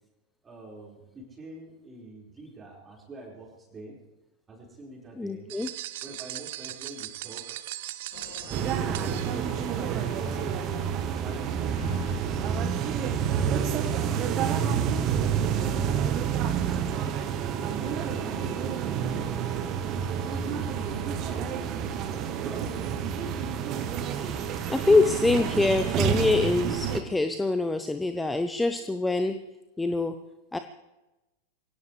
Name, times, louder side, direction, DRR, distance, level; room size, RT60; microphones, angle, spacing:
voice 1, 0.4-4.0 4.5-5.5 6.0-7.6 11.0-12.2 16.6-17.0 17.5-19.6 20.3-22.9, right 2 dB, 20° right, -2 dB, 4.8 m, -45 dB
voice 2, 5.2-5.8 24.0-29.4 29.8-30.2 30.5-30.6, left 3 dB, 5° left, 9 dB, 0.7 m, -25 dB
sound 1, 5.5-9.8, right 15 dB, 50° right, 0.6 m, -39 dB
sound 2, 8.1-13.7, left 6 dB, 50° left, 2.4 m, -47 dB
sound 3, 8.5-27.0, right 8 dB, 35° right, 1.2 m, -29 dB
23.5 x 17.0 x 3.3 m, 1.0 s
figure-of-eight pair, 90°, 0 cm